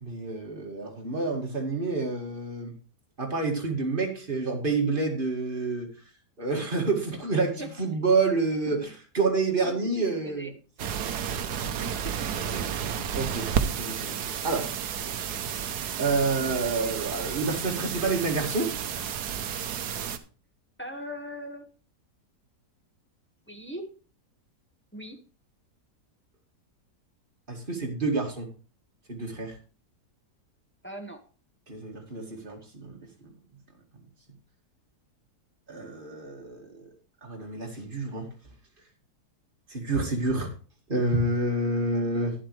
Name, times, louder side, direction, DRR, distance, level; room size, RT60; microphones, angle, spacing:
voice 1, 0.0-2.7 3.2-5.9 6.4-8.9 9.1-10.5 13.2-14.2 14.4-14.7 16.0-18.7 27.5-28.5 29.1-29.6 31.7-33.0 35.7-36.8 37.2-38.3 39.7-40.5 40.9-42.3, right 3 dB, 30° right, 1 dB, 2.3 m, -28 dB
voice 2, 9.6-10.5 11.8-12.7 20.8-21.7 23.5-23.9 24.9-25.2 30.8-31.2, equal, 10° left, 4 dB, 1.2 m, -40 dB
sound 1, 10.8-20.2, right 8 dB, 70° right, 1.4 m, -31 dB
11.0 x 11.0 x 3.2 m, 0.36 s
omnidirectional pair, 1.8 m